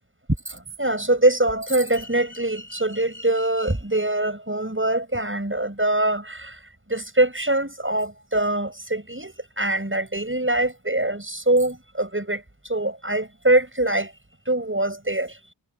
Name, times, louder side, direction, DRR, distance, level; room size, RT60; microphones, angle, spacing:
voice 1, 0.5-6.6 6.9-14.1 14.5-15.3, right 1 dB, 25° right, 7.6 m, -23 dB
wide cardioid pair, 40°, 44 cm